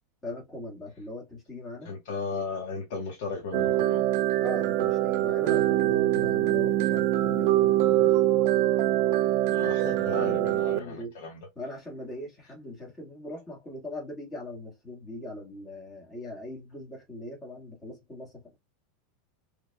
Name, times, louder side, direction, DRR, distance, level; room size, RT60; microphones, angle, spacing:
voice 1, 0.2-1.9 4.4-8.2 10.1-11.2 11.6-18.4, left 1 dB, 20° left, 1.9 m, -40 dB
voice 2, 1.8-4.0 9.5-11.5, left 4 dB, 65° left, 1.2 m, -35 dB
sound 1, 3.5-10.8, right 14 dB, 60° right, 0.6 m, -24 dB
4.4 x 3.4 x 2.3 m
supercardioid pair, 150°, 0 cm